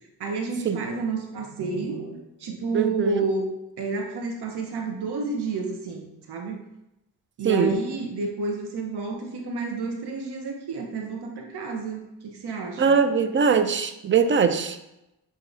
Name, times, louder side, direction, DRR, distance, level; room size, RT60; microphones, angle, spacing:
voice 1, 0.2-3.5 3.8-6.6 7.4-13.0, right 3 dB, 65° right, 2 dB, 0.9 m, -30 dB
voice 2, 2.7-3.2 7.4-7.7 12.8-14.8, right 6 dB, 30° right, 9 dB, 0.4 m, -21 dB
6.7 x 2.8 x 2.6 m, 0.89 s
cardioid pair, 60°, 43 cm